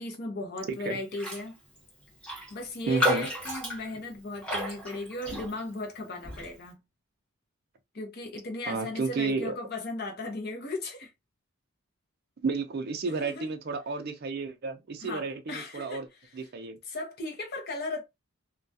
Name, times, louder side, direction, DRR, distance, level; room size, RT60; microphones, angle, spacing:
voice 1, 0.0-1.6 2.5-6.8 7.9-11.1 13.2-13.4 15.0-16.5 16.8-18.0, left 2 dB, 45° left, 0.6 m, -37 dB
voice 2, 0.7-1.0 2.9-3.3 8.7-9.5 12.4-16.1 16.3-16.8, right 4 dB, 45° right, 0.4 m, -32 dB
Raindrop, 1.1-1.5 1.8-1.9 2.2-5.8 6.2-6.5, left 1 dB, 5° left, 0.7 m, -32 dB
2.2 x 2.2 x 2.6 m
head